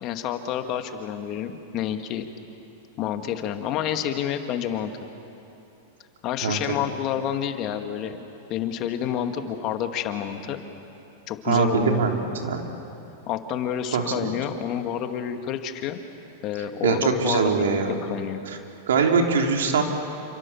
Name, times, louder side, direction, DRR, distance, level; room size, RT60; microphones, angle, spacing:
voice 1, 0.0-2.3 3.0-4.9 6.2-8.2 8.5-10.6 11.3-12.1 13.3-16.0 16.4-17.7 18.1-18.4, left 9 dB, 45° left, 6 dB, 2.1 m, -29 dB
voice 2, 11.5-12.6 13.9-14.3 16.8-18.0 18.5-18.6 18.9-19.8, right 5 dB, 85° right, 2 dB, 3.5 m, -22 dB
29.0 x 26.5 x 7.3 m, 2.8 s
hypercardioid pair, 125°, 0 cm